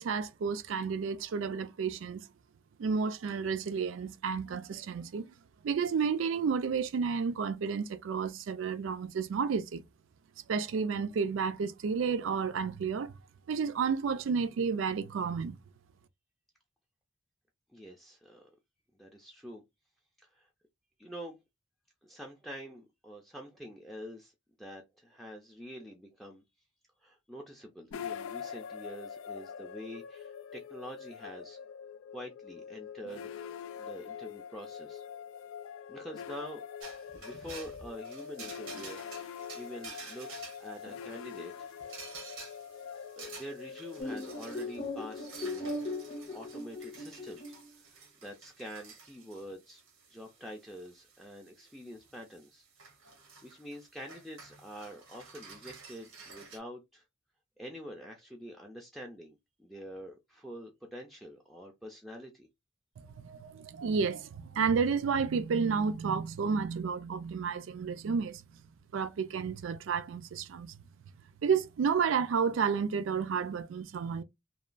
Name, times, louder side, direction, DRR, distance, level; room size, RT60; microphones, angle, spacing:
voice 1, 0.0-2.3 2.8-5.3 5.6-9.8 10.5-13.1 13.5-15.5 63.0-68.4 68.9-70.7 71.4-74.2, right 6 dB, 75° right, 0.4 m, -31 dB
voice 2, 17.7-18.5 18.9-19.6 20.2-20.5 21.0-21.4 22.0-24.3 24.6-26.4 27.0-31.6 32.1-33.3 33.8-35.0 35.9-36.6 37.2-41.5 42.0-42.1 43.2-45.7 46.3-49.8 50.1-52.6 53.4-57.0 57.6-62.5, equal, ahead, 0.3 m, -46 dB
sound 1, 27.9-47.0, left 7 dB, 80° left, 0.3 m, -45 dB
sound 2, 36.8-56.6, right 4 dB, 90° right, 1.0 m, -51 dB
sound 3, 44.0-47.7, left 2 dB, 40° left, 0.6 m, -38 dB
2.9 x 2.2 x 2.4 m
head